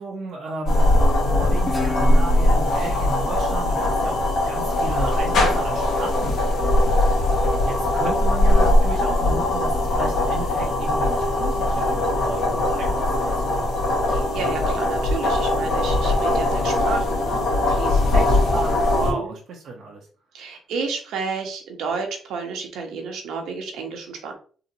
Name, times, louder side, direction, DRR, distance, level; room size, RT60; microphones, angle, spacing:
voice 1, 0.0-13.4 18.1-20.1, right 3 dB, 65° right, -1 dB, 0.8 m, -34 dB
sound 1, 0.7-19.1, left 1 dB, 65° left, 1.8 m, -20 dB
Guitar, 1.7-4.9, left 3 dB, 20° left, 1.1 m, -34 dB
voice 2, 14.1-18.1 19.0-19.3 20.3-24.3, right 5 dB, 85° right, 3 dB, 1.1 m, -31 dB
3.9 x 2.8 x 2.9 m, 0.41 s
cardioid pair, 90°, 0 cm